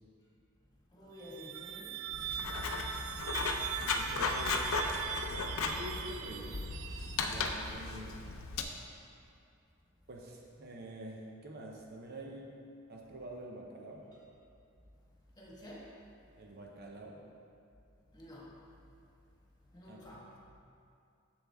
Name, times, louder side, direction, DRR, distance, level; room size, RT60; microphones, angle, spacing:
voice 1, 0.9-2.9 15.4-15.9 18.1-18.5 19.7-20.3, left 1 dB, 20° left, -6 dB, 1.6 m, -51 dB
sound 1, 1.1-7.7, right 8 dB, 80° right, 0.4 m, -41 dB
Writing, 2.1-8.6, left 3 dB, 85° left, 0.6 m, -36 dB
voice 2, 3.9-4.6 5.6-6.6 7.2-8.2 10.1-12.5 12.9-14.0 16.3-17.2 19.9-20.2, right 1 dB, 50° right, -1 dB, 0.7 m, -47 dB
7.4 x 7.1 x 3.5 m, 2.5 s
head